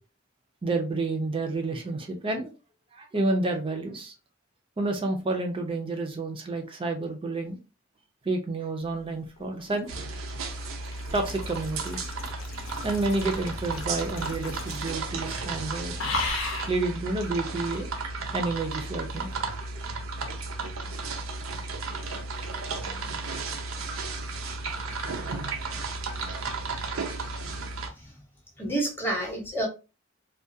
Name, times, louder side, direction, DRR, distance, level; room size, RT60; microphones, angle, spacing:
voice 1, 0.6-2.5 2.9-4.1 4.8-7.6 8.2-9.9 11.1-12.0 12.8-16.0 16.7-17.9 18.3-19.3, right 2 dB, 25° right, 0.4 m, -29 dB
sound 1, 9.4-15.1 15.4-15.6 16.0-16.8 17.7-17.9, left 3 dB, 75° left, 0.7 m, -36 dB
sound 2, 9.9-27.9, right 3 dB, 90° right, 0.5 m, -34 dB
voice 2, 28.6-29.7, right 1 dB, 10° left, 0.8 m, -30 dB
2.3 x 2.2 x 2.6 m
head